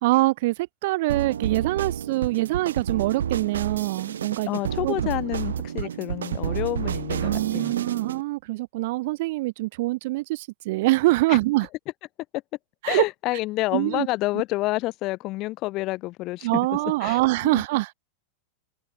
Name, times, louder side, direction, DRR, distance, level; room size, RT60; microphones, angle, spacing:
voice 1, 0.0-4.5 4.8-5.0 5.8-5.9 7.2-11.7 12.8-13.0 13.7-14.1 16.4-17.9, right 20 dB, 50° right, 2.8 m, -24 dB
sound 1, 1.1-8.2, right 8 dB, 65° right, 3.5 m, -30 dB
voice 2, 4.5-7.7 11.3-11.4 12.9-16.7 17.0-17.6, left 19 dB, 40° left, 2.6 m, -29 dB
figure-of-eight pair, 90°, 0 cm